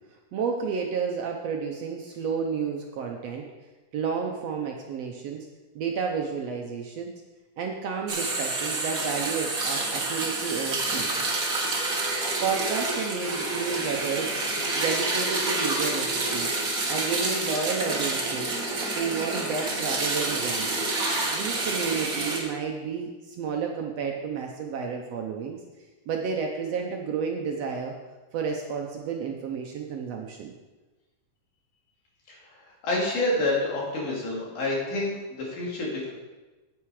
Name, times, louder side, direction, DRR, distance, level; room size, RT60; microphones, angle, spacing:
voice 1, 0.3-3.5 3.9-5.5 5.7-7.1 7.6-11.1 12.4-14.4 14.8-16.5 16.9-18.5 18.9-20.8 21.3-25.6 26.1-27.9 28.3-30.5, right 6 dB, 70° right, 1 dB, 1.7 m, -31 dB
sound 1, 8.1-22.4, right 2 dB, 35° right, 1.5 m, -28 dB
voice 2, 32.8-36.1, left 2 dB, 75° left, -4 dB, 4.1 m, -28 dB
9.2 x 8.7 x 4.8 m, 1.2 s
omnidirectional pair, 3.6 m